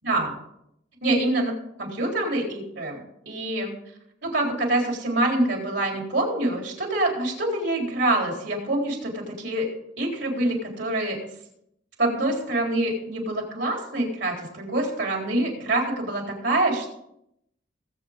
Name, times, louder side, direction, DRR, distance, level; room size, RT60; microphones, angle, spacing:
voice 1, 0.0-0.3 1.0-1.5 1.8-3.7 4.2-9.7 10.0-11.2 12.0-16.9, right 1 dB, 75° right, 0 dB, 3.9 m, -25 dB
19.0 x 8.4 x 3.7 m, 0.77 s
head